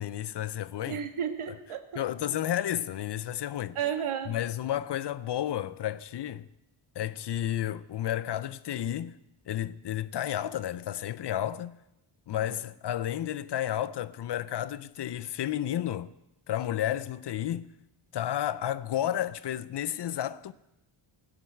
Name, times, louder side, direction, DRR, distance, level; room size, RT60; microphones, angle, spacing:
voice 1, 0.0-1.0 2.0-3.8 4.3-6.5 7.0-9.2 9.5-11.8 12.3-16.1 16.5-17.7 18.1-20.5, left 11 dB, 55° left, 0.6 m, -32 dB
voice 2, 0.9-2.0 2.3-2.4 3.7-4.4 12.4-12.6, right 8 dB, 75° right, 1.7 m, -33 dB
17.5 x 6.8 x 9.1 m
wide cardioid pair, 145°, 50 cm